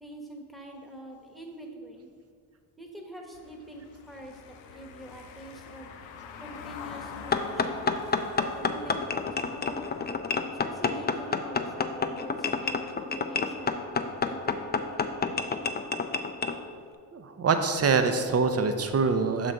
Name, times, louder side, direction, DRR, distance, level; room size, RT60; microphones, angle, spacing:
voice 1, 0.0-2.1 2.8-5.9 6.4-7.9 8.4-9.8 10.4-13.8 14.2-14.8, right 1 dB, ahead, 1 dB, 1.1 m, -45 dB
Car passing by / Engine, 3.3-10.1, left 6 dB, 85° left, 0.6 m, -45 dB
sound 1, 7.3-16.6, left 5 dB, 25° left, 0.4 m, -29 dB
voice 2, 17.1-19.5, right 4 dB, 35° right, 7 dB, 0.7 m, -25 dB
6.1 x 4.0 x 4.5 m, 2.1 s
supercardioid pair, 55°, 44 cm